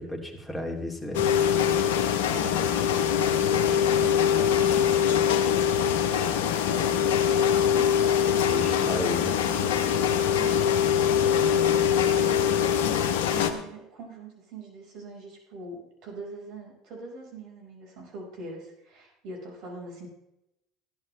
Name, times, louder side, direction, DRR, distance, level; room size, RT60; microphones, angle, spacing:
voice 1, 0.0-1.3 8.5-9.3, left 1 dB, 10° left, 0 dB, 2.8 m, -33 dB
sound 1, 1.1-13.5, left 9 dB, 75° left, 0.9 m, -23 dB
voice 2, 2.2-8.1 8.4-20.1, right 3 dB, 65° right, -1 dB, 4.8 m, -43 dB
14.0 x 11.0 x 3.3 m, 0.86 s
hypercardioid pair, 75°, 0 cm